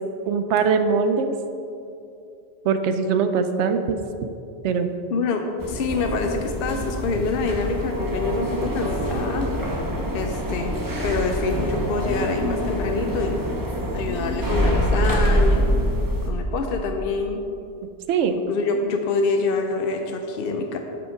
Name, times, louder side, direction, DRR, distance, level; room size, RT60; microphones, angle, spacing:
voice 1, 0.3-1.3 2.6-4.0 4.6-4.9 18.1-18.4, right 5 dB, 90° right, 8 dB, 0.9 m, -21 dB
voice 2, 5.1-9.5 10.1-10.8 11.0-13.4 13.9-15.6 16.2-17.4 18.5-20.8, left 4 dB, 60° left, 4 dB, 0.7 m, -26 dB
sound 1, 5.6-16.3, equal, 20° right, 0.8 m, -25 dB
6.9 x 6.1 x 5.0 m, 2.6 s
omnidirectional pair, 1.2 m